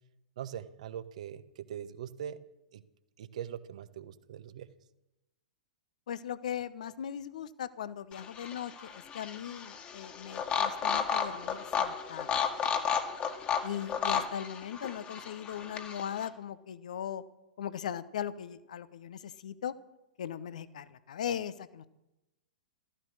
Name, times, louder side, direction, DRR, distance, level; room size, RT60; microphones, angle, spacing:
voice 1, 0.4-2.4 2.7-2.8 3.2-4.7, right 9 dB, 55° right, 13 dB, 1.1 m, -42 dB
voice 2, 6.1-12.4 13.6-17.2 17.6-19.7 20.2-21.9, left 9 dB, 60° left, 15 dB, 0.9 m, -39 dB
sound 1, 8.1-16.3, left 7 dB, 25° left, 1.8 m, -33 dB
14.5 x 14.5 x 6.4 m, 0.94 s
figure-of-eight pair, 105°, 4 cm